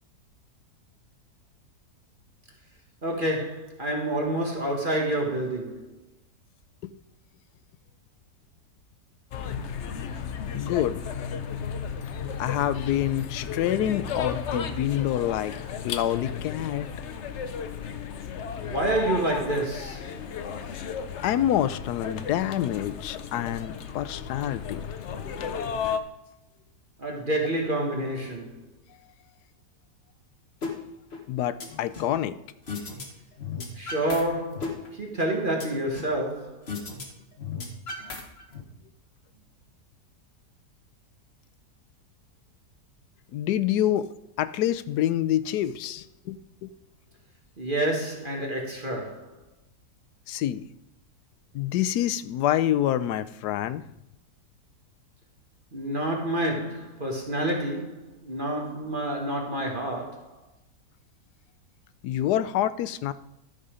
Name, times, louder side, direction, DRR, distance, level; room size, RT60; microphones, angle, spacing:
voice 1, 3.0-5.9 18.6-20.1 27.0-28.6 33.8-36.6 47.6-49.3 55.7-60.3, right 1 dB, 30° right, 1.5 m, -28 dB
sound 1, 9.3-26.0, left 7 dB, 60° left, 0.8 m, -34 dB
voice 2, 10.5-11.0 12.4-15.5 15.8-16.9 21.2-24.8 25.3-25.4 31.3-32.4 43.3-44.1 44.4-46.7 50.3-50.6 51.5-53.8 62.0-63.1, left 11 dB, 80° left, 1.1 m, -27 dB
sound 2, 30.6-30.7 31.1-32.2 32.7-33.1 33.3-34.2 34.5-36.2 36.7-37.0 37.3-38.6, left 4 dB, 40° left, 1.5 m, -35 dB
12.5 x 5.5 x 5.0 m
omnidirectional pair, 1.8 m